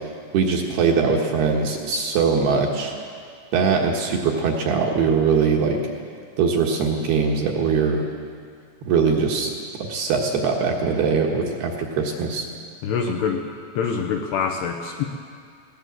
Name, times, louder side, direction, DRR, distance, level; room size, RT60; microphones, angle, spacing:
voice 1, 0.3-2.9 3.5-5.8 6.4-8.0 8.9-9.5 9.9-12.5, right 5 dB, 65° right, 0 dB, 2.9 m, -21 dB
voice 2, 12.8-13.5 13.8-15.0, left 6 dB, 75° left, 2 dB, 2.6 m, -25 dB
19.5 x 18.0 x 7.4 m, 2.2 s
omnidirectional pair, 5.9 m